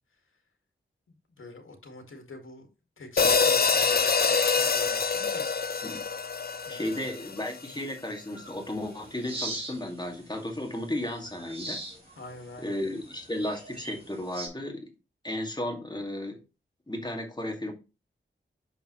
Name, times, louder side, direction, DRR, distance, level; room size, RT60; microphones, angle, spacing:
voice 1, 1.1-5.5 6.7-7.1 12.2-12.8, left 2 dB, 85° left, 1.9 m, -46 dB
sound 1, 3.2-7.5, left 5 dB, 50° left, 0.7 m, -25 dB
voice 2, 6.7-11.8 12.6-14.9 15.2-16.4 16.9-17.7, left 1 dB, 20° left, 2.2 m, -34 dB
sound 2, 8.3-14.5, right 1 dB, 30° right, 2.9 m, -42 dB
6.8 x 5.2 x 3.1 m
wide cardioid pair, 65°, 20 cm